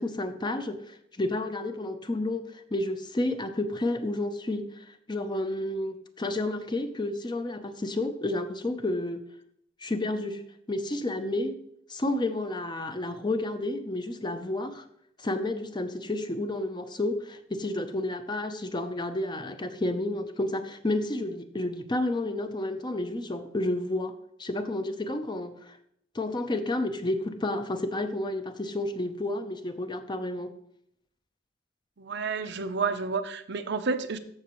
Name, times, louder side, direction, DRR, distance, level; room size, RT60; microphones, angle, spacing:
voice 1, 0.0-9.2 9.8-10.4 10.7-11.6 11.9-14.8 15.2-25.8 26.1-30.5, left 2 dB, 25° left, 8 dB, 0.7 m, -31 dB
voice 2, 32.0-34.2, right 4 dB, 60° right, 9 dB, 0.7 m, -30 dB
14.5 x 6.0 x 3.1 m, 0.71 s
head